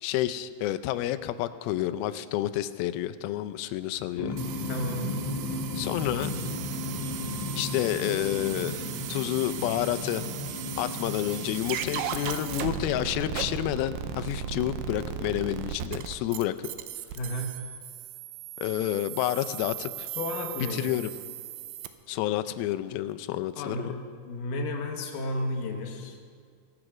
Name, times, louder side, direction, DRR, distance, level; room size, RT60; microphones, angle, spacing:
voice 1, 0.0-4.3 5.8-6.3 7.6-10.3 10.8-16.7 18.6-20.1 20.7-21.1 22.1-23.9, left 13 dB, 80° left, 11 dB, 2.4 m, -29 dB
sound 1, 4.1-15.1, left 2 dB, 45° left, 2.8 m, -36 dB
sound 2, 4.4-21.9, right 10 dB, 80° right, 2.1 m, -37 dB
voice 2, 4.7-5.1 17.2-17.5 20.1-21.0 23.6-24.0 24.2-26.2, left 1 dB, 65° left, 2 dB, 2.9 m, -32 dB
23.5 x 7.8 x 6.0 m, 2.1 s
omnidirectional pair, 4.4 m